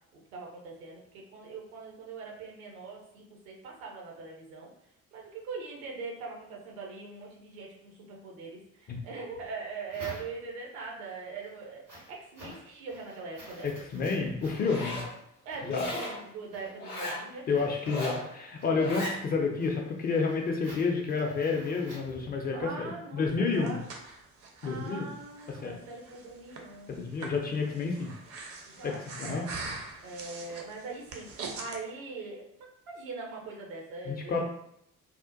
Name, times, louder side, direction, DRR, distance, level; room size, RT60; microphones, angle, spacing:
voice 1, 0.1-4.7 5.1-13.7 15.4-18.0 22.5-23.9 24.6-27.3 28.7-29.5 30.0-34.4, right 4 dB, 70° right, -1 dB, 0.7 m, -42 dB
sound 1, 9.3-10.7 11.2-22.8, equal, 90° right, 1.5 m, -51 dB
voice 2, 13.6-15.0 15.6-15.9 17.5-23.8 24.6-25.1 25.5-25.8 26.9-28.1 28.8-29.4 34.1-34.4, left 4 dB, 25° left, 1 dB, 0.3 m, -30 dB
Zipper (clothing), 14.5-15.1 15.7-16.2 16.8-17.2 17.8-18.2 18.7-19.2, left 1 dB, 90° left, 0.6 m, -36 dB
Breathing, 23.3-31.8, right 3 dB, 35° right, 0.5 m, -43 dB
2.8 x 2.1 x 2.5 m, 0.74 s
figure-of-eight pair, 45°, 44 cm